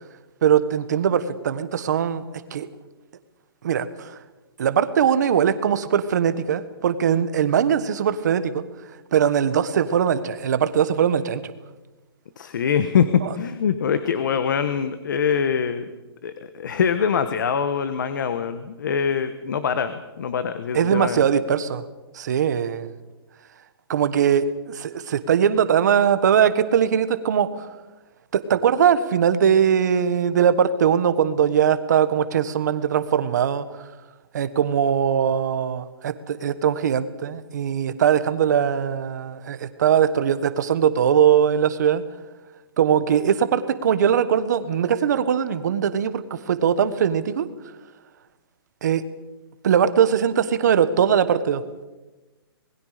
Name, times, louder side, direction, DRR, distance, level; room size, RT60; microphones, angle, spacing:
voice 1, 0.4-2.2 2.5-2.7 3.6-4.1 4.6-8.6 9.1-11.4 13.2-13.3 20.7-21.8 22.1-22.9 23.9-27.5 28.3-33.7 34.3-42.0 42.8-47.5 48.8-49.0 49.6-51.6, right 8 dB, 45° right, 12 dB, 1.3 m, -21 dB
voice 2, 12.4-15.8 16.2-21.2, left 7 dB, 50° left, 11 dB, 1.2 m, -23 dB
27.0 x 20.5 x 5.1 m, 1.1 s
hypercardioid pair, 175°, 13 cm